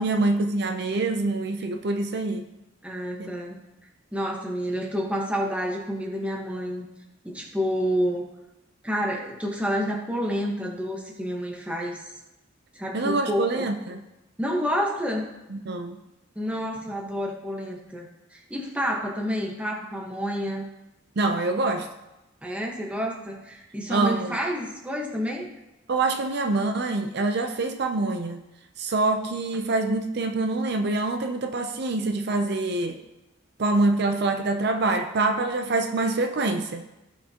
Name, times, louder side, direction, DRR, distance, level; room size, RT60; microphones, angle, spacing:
voice 1, 0.0-2.4 3.2-3.3 12.9-14.0 15.5-16.0 21.2-21.9 23.9-24.3 25.9-28.4 28.8-33.0 33.6-36.8, right 2 dB, 60° right, 6 dB, 0.6 m, -25 dB
voice 2, 2.8-3.6 4.1-6.8 7.2-8.3 8.8-12.1 12.7-13.7 14.4-15.3 16.3-20.7 22.4-25.5, equal, 5° right, 0 dB, 1.2 m, -29 dB
17.5 x 5.9 x 2.9 m, 0.97 s
head